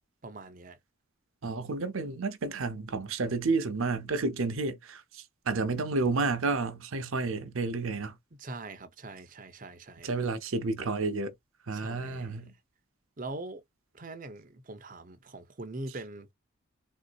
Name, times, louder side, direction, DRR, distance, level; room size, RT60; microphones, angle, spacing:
voice 1, 0.2-0.8 8.3-10.1 11.7-12.4 13.2-13.6 13.9-16.3, right 2 dB, 40° right, 0.6 m, -42 dB
voice 2, 1.4-8.1 10.0-11.3 11.7-12.5, right 3 dB, 80° right, 0.7 m, -31 dB
3.7 x 2.7 x 2.4 m
head